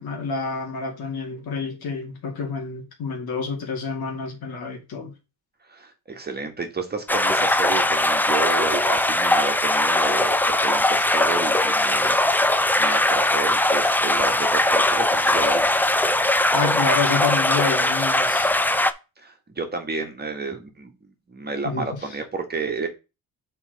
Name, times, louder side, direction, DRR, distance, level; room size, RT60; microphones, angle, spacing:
voice 1, 0.0-5.1 16.5-18.5 21.6-21.9, left 4 dB, 70° left, 2.2 m, -28 dB
voice 2, 5.7-15.9 19.2-20.9 21.3-22.9, right 4 dB, 25° right, 1.4 m, -31 dB
sound 1, 7.1-18.9, left 1 dB, 5° left, 0.3 m, -20 dB
7.2 x 4.3 x 3.9 m
cardioid pair, 115°, 38 cm